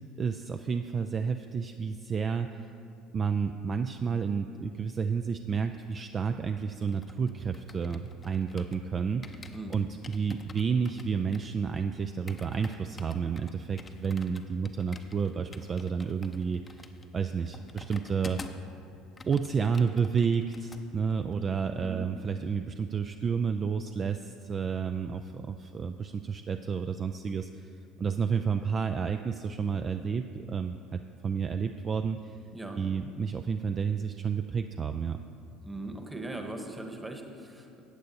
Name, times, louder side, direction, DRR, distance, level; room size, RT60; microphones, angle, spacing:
voice 1, 0.2-2.7 3.1-16.8 17.1-18.4 19.3-27.7 28.0-32.4 32.8-35.2, right 6 dB, 35° right, 7 dB, 0.3 m, -31 dB
sound 1, 6.6-8.9 9.2-18.7 19.0-20.8 21.1-21.4, left 3 dB, 25° left, 0.6 m, -48 dB
voice 2, 35.6-37.8, right 2 dB, 10° right, 4 dB, 1.2 m, -39 dB
14.5 x 8.5 x 2.8 m, 2.6 s
hypercardioid pair, 65°, 0 cm